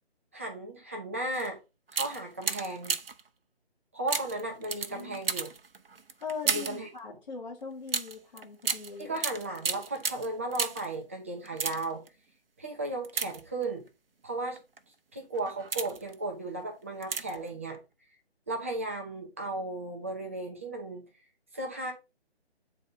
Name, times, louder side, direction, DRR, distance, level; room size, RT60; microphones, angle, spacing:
voice 1, 0.3-1.6 1.9-3.0 3.9-5.5 6.4-6.9 9.0-12.0 12.6-13.8 14.2-14.6 15.1-17.8 18.5-21.0 21.5-21.9, right 2 dB, 10° right, 0.6 m, -35 dB
sound 1, 1.3-1.5 1.9-3.3 4.1-6.9 7.9-11.0 11.4-12.1 13.0-13.9 14.6-14.8 15.3-16.1 17.0-17.5 17.7-17.8, right 5 dB, 55° right, 0.8 m, -34 dB
voice 2, 4.9-5.2 6.2-9.2, left 5 dB, 40° left, 1.9 m, -40 dB
8.3 x 4.0 x 3.9 m
figure-of-eight pair, 150°, 34 cm